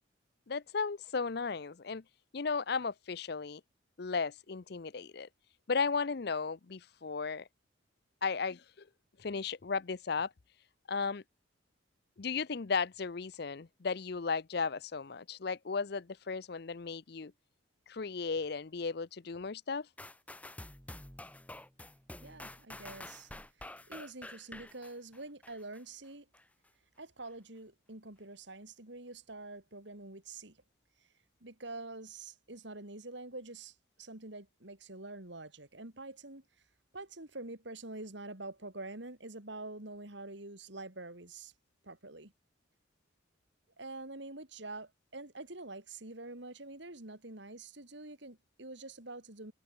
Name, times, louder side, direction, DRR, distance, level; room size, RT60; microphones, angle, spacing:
voice 1, 0.5-2.0 2.3-3.6 4.0-5.3 5.7-7.5 8.2-8.9 9.2-10.3 10.9-11.2 12.2-17.3 17.9-19.9, left 5 dB, 55° left, 0.6 m, -35 dB
sound 1, 20.0-25.8 26.3-26.4, left 1 dB, 5° left, 1.0 m, -48 dB
voice 2, 22.2-23.3 23.6-26.3 27.0-30.6 31.4-36.4 36.9-41.5 41.8-42.3 43.8-49.5, right 2 dB, 65° right, 3.4 m, -46 dB
head